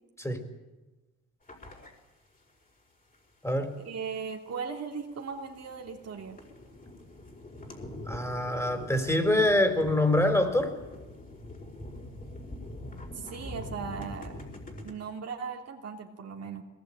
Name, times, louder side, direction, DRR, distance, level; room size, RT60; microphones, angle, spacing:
sound 1, 1.4-1.9 2.4-2.5 3.1-3.2 4.7-4.8 5.1-14.9, left 1 dB, 25° left, 5.1 m, -44 dB
voice 1, 3.8-6.4 13.1-14.4 14.8-16.6, right 5 dB, 55° right, 2 dB, 3.1 m, -38 dB
voice 2, 8.1-10.7, left 1 dB, 10° left, 6 dB, 4.4 m, -25 dB
21.5 x 19.5 x 8.9 m, 1.1 s
cardioid pair, 90°, 30 cm